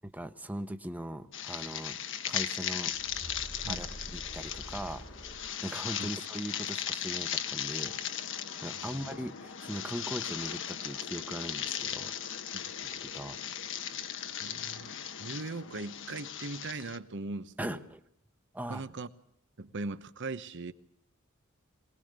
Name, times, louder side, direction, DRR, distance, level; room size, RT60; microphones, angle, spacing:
voice 1, 0.0-2.9 3.7-5.1 5.6-8.3 8.6-12.1 12.8-13.4 17.6-18.0 18.5-18.8, equal, 10° right, 1.0 m, -40 dB
sound 1, 1.3-17.0, left 9 dB, 60° left, 1.2 m, -37 dB
sound 2, 2.9-5.9, equal, 25° right, 1.8 m, -46 dB
voice 2, 14.4-14.9 15.2-17.8 18.7-19.1 19.6-20.7, right 3 dB, 60° right, 1.1 m, -39 dB
24.0 x 19.0 x 6.6 m
head